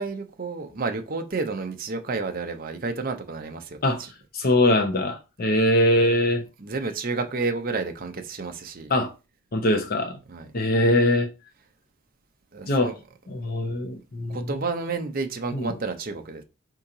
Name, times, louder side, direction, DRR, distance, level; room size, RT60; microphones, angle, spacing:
voice 1, 0.0-4.1 6.6-8.9 10.3-10.5 12.5-12.9 14.3-16.4, right 3 dB, 40° right, 0.6 m, -30 dB
voice 2, 4.3-6.4 8.9-9.1 9.5-10.2 10.5-11.3 12.7-12.9 13.3-14.5 15.5-15.7, left 1 dB, 45° left, 0.6 m, -22 dB
4.6 x 2.8 x 3.7 m
head